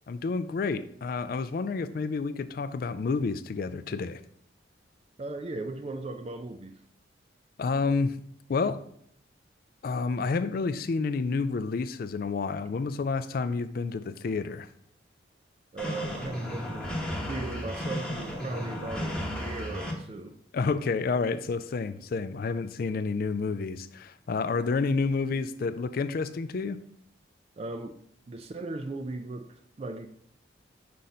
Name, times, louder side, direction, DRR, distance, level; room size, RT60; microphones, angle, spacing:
voice 1, 0.1-4.2 7.6-8.2 8.5-8.8 9.8-14.7 20.5-26.8, left 4 dB, 50° left, 0.3 m, -29 dB
voice 2, 5.2-6.8 15.7-17.0 17.3-20.4 27.6-28.0 28.3-30.1, right 2 dB, 30° right, 0.4 m, -37 dB
sound 1, 15.8-19.9, left 1 dB, 5° left, 0.9 m, -34 dB
5.6 x 5.0 x 4.0 m
head